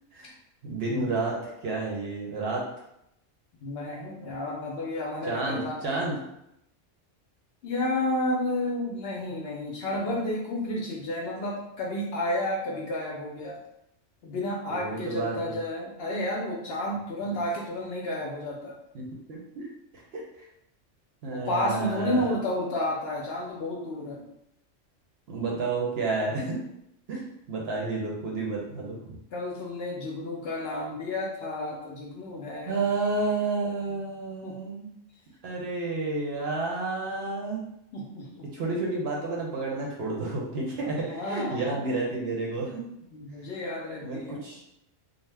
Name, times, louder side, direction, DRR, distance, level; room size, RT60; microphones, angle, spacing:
voice 1, 0.6-2.6 5.3-6.1 14.7-15.6 17.2-17.3 18.9-19.7 19.9-20.2 21.2-22.3 25.3-26.6 27.1-29.2 32.7-34.9 35.4-37.6 38.5-42.9 44.0-44.6, right 3 dB, 60° right, -3 dB, 0.8 m, -31 dB
voice 2, 3.6-5.8 7.6-13.6 14.2-18.7 21.3-24.2 29.3-32.8 34.4-34.5 37.9-38.5 40.9-41.8 43.1-44.5, left 1 dB, 65° left, -2 dB, 0.7 m, -31 dB
2.7 x 2.0 x 3.2 m, 0.80 s
omnidirectional pair, 1.3 m